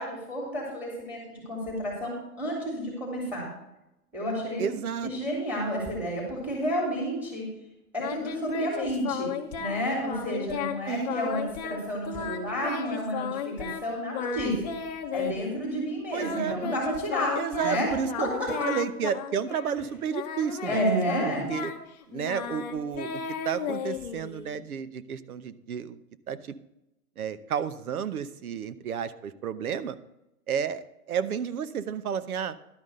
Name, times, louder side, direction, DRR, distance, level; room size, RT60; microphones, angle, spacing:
voice 1, 0.0-3.5 4.1-4.7 5.0-7.5 7.9-9.3 9.6-14.6 15.1-18.7 20.7-21.5, equal, 5° right, -2 dB, 3.5 m, -30 dB
voice 2, 4.6-5.1 10.9-11.2 16.1-16.6 17.4-18.3 18.6-20.8 21.3-21.7 22.1-26.0 26.3-26.4 27.2-30.0 30.5-32.6, right 7 dB, 70° right, 14 dB, 0.9 m, -31 dB
Singing, 8.0-9.8 10.1-10.8 11.1-11.8 12.1-13.8 14.1-15.6 16.2-19.8 20.1-24.5, left 8 dB, 25° left, 0.9 m, -34 dB
12.0 x 5.3 x 6.5 m, 0.89 s
hypercardioid pair, 155°, 46 cm